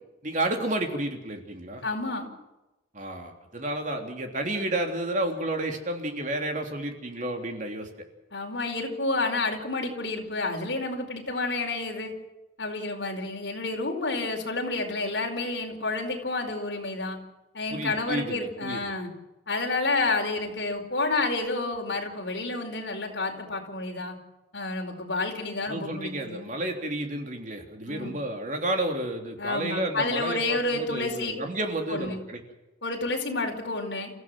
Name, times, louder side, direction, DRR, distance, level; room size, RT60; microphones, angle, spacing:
voice 1, 0.2-1.8 2.9-7.9 17.7-18.8 25.7-32.4, right 1 dB, 40° right, 3 dB, 3.3 m, -31 dB
voice 2, 1.8-2.3 8.3-12.1 12.6-17.2 17.5-19.1 19.5-24.2 24.5-26.4 27.9-28.1 29.4-31.3 31.9-32.2 32.8-34.1, left 3 dB, 65° left, 2 dB, 4.7 m, -30 dB
28.5 x 15.5 x 7.6 m, 1.0 s
head